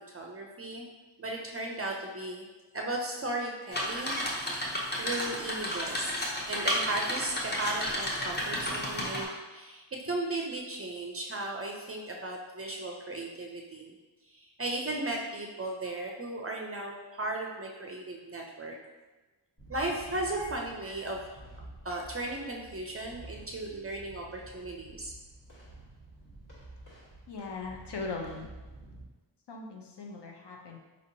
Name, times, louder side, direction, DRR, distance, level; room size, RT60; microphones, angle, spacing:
voice 1, 0.1-0.9 1.2-2.4 2.7-4.6 5.0-6.1 6.5-13.9 14.3-18.8 19.7-21.2 21.8-25.1, right 2 dB, 30° right, 0 dB, 0.4 m, -36 dB
sound 1, 3.7-9.2, equal, 20° left, 0.7 m, -32 dB
sound 2, 19.6-29.0, right 2 dB, 40° left, 1.3 m, -50 dB
voice 2, 27.3-28.5 29.5-30.8, left 3 dB, 60° left, 1 dB, 0.7 m, -39 dB
4.3 x 2.7 x 2.6 m, 1.2 s
wide cardioid pair, 85°, 47 cm